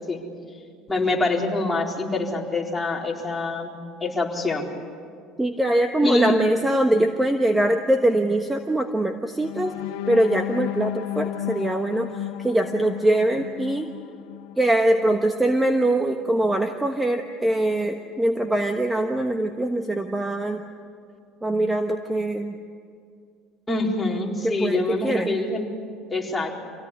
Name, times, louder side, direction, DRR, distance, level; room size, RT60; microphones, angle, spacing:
voice 1, 0.9-4.7 6.0-6.3 23.7-25.7 26.1-26.5, left 2 dB, 10° left, -2 dB, 4.3 m, -25 dB
voice 2, 5.4-9.8 10.1-13.9 14.6-20.7 21.4-22.6 24.4-25.3, right 1 dB, 10° right, 5 dB, 1.3 m, -22 dB
sound 1, 9.4-15.4 15.8-16.0 16.4-16.6, left 13 dB, 80° left, 0.6 m, -33 dB
26.0 x 17.5 x 9.8 m, 2.2 s
supercardioid pair, 110°, 0 cm